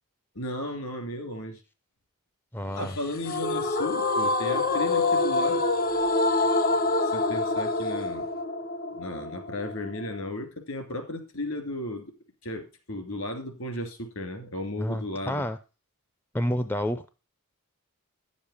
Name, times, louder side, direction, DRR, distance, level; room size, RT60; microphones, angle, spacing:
voice 1, 0.3-1.6 2.7-5.6 7.0-8.3 8.9-12.1 12.4-15.4, left 1 dB, 70° left, 5 dB, 2.7 m, -34 dB
voice 2, 2.5-3.0 14.8-15.6 16.3-17.1, equal, 10° left, 11 dB, 0.4 m, -29 dB
sound 1, 3.2-10.3, left 2 dB, 40° left, 0.7 m, -26 dB
10.5 x 7.2 x 4.8 m, 0.31 s
head